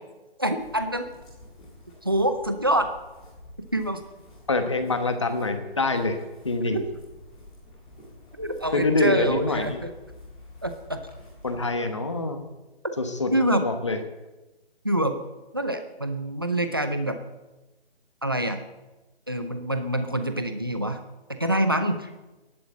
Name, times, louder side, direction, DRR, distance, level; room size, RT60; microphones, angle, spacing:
voice 1, 0.4-1.1 2.0-2.9 3.7-4.0 6.7-6.8 8.4-9.9 10.6-11.0 12.8-12.9 13.3-13.6 14.8-15.2 15.5-17.2 18.2-18.6 19.3-21.0 21.3-22.1, right 1 dB, 20° right, 8 dB, 0.6 m, -25 dB
sound 1, 0.6-11.7, left 1 dB, 5° left, 1.8 m, -49 dB
voice 2, 4.5-6.2 6.4-6.8 8.7-9.8 11.4-12.5 13.0-13.3 13.6-14.0, left 3 dB, 30° left, 8 dB, 1.1 m, -25 dB
12.5 x 11.5 x 7.9 m, 1.1 s
hypercardioid pair, 180°, 31 cm